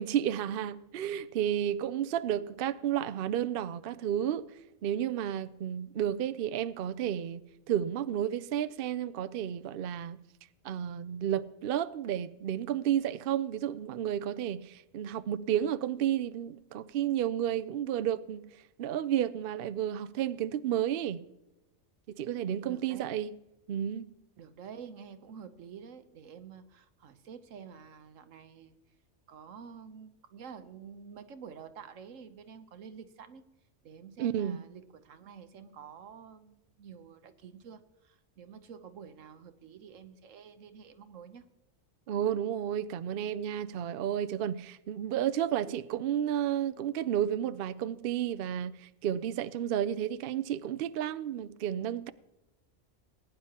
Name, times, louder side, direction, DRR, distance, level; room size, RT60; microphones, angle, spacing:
voice 1, 0.0-7.4 7.7-10.2 10.6-18.5 18.8-21.2 22.1-23.3 23.7-24.1 34.2-34.6 42.1-52.1, right 10 dB, 60° right, 0.6 m, -32 dB
voice 2, 22.7-23.2 24.4-28.8 29.3-33.4 33.8-41.5, right 7 dB, 85° right, 1.3 m, -49 dB
20.0 x 10.0 x 2.9 m
omnidirectional pair, 1.3 m